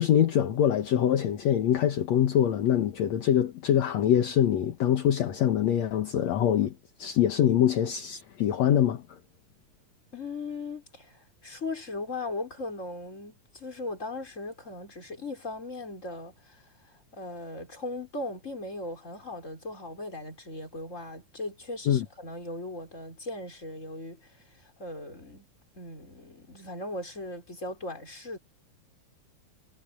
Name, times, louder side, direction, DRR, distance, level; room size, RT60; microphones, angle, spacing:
voice 1, 0.0-6.7 7.0-9.0 21.9-22.1, left 10 dB, 65° left, 2.4 m, -24 dB
voice 2, 10.1-25.5 25.7-28.4, left 2 dB, 20° left, 5.5 m, -38 dB
omnidirectional pair, 3.7 m